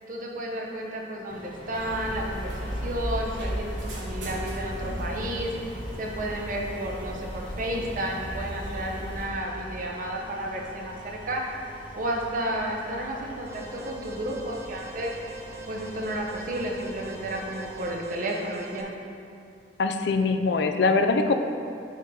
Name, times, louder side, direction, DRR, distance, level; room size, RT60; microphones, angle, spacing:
voice 1, 0.1-5.5 6.0-11.4 11.9-15.1 15.7-18.9, right 1 dB, 50° right, -1 dB, 0.9 m, -32 dB
sound 1, 1.3-17.9, equal, 30° left, 0.7 m, -46 dB
sound 2, 1.7-9.3, equal, 90° right, 1.4 m, -35 dB
Alarm, 13.5-18.8, right 3 dB, 15° right, 0.6 m, -44 dB
voice 2, 19.8-21.3, left 3 dB, 65° left, 7 dB, 0.4 m, -22 dB
8.2 x 3.8 x 4.2 m, 2.4 s
head